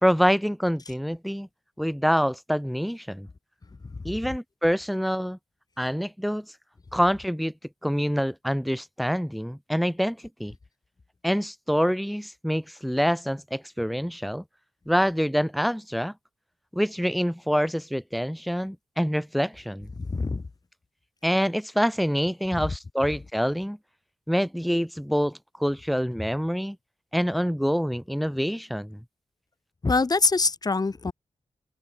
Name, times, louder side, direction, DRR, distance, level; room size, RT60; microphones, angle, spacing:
voice 1, 0.0-1.5 1.8-3.3 4.0-5.4 5.8-6.4 6.9-7.5 7.8-10.5 11.2-14.4 14.9-16.1 16.7-19.9 21.2-23.8 24.3-26.8 27.1-29.0, equal, ahead, 3.3 m, -26 dB
voice 2, 20.0-20.5 22.6-22.7 29.8-31.1, left 3 dB, 35° left, 2.8 m, -24 dB
open air
wide cardioid pair, 150°, 12 cm